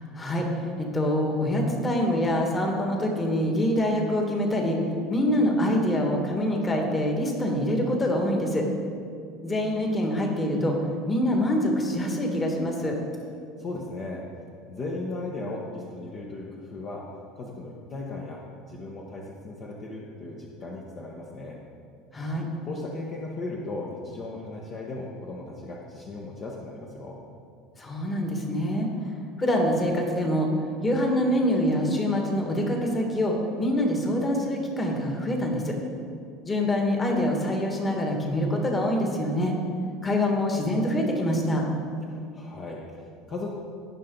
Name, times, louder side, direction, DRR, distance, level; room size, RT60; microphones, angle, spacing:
voice 1, 0.1-4.8 5.1-8.7 9.4-10.8 11.1-13.0 22.1-22.5 27.8-28.9 29.4-30.5 30.8-35.8 36.4-39.6 40.0-41.7, left 1 dB, 20° left, 1 dB, 1.7 m, -25 dB
voice 2, 13.6-14.3 14.7-17.1 17.3-21.6 22.6-27.2 42.1-43.5, left 2 dB, 35° left, -2 dB, 1.1 m, -37 dB
17.5 x 5.9 x 3.9 m, 2.3 s
supercardioid pair, 130°, 0 cm